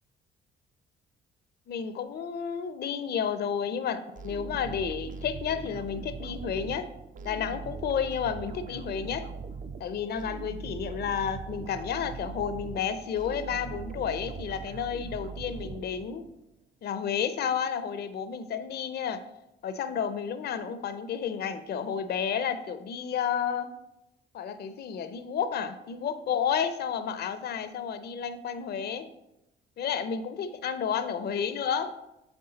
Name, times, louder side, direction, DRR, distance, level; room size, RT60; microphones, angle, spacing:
voice 1, 1.7-6.9 7.2-9.3 9.8-16.2 16.8-19.3 19.6-23.7 24.3-29.1 29.8-31.9, left 7 dB, 55° left, 11 dB, 0.5 m, -31 dB
sound 1, 4.1-16.4, right 5 dB, 40° right, 0.4 m, -40 dB
8.0 x 3.6 x 3.9 m, 0.88 s
cardioid pair, 90°, 20 cm